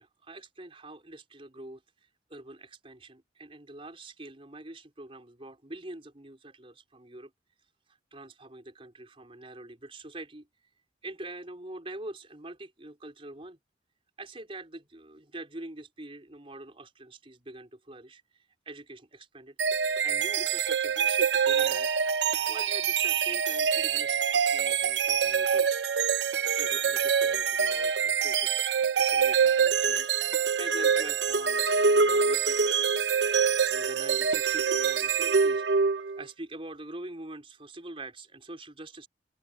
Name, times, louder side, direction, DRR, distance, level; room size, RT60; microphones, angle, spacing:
voice 1, 0.0-7.3 8.1-10.5 11.0-13.6 14.2-19.6 20.0-21.9 22.5-25.7 26.4-30.1 30.6-31.6 32.0-32.9 33.7-35.6 35.9-39.1, right 2 dB, 30° right, 4.3 m, -44 dB
sound 1, 19.6-36.2, right 6 dB, 80° right, 0.7 m, -25 dB
open air
head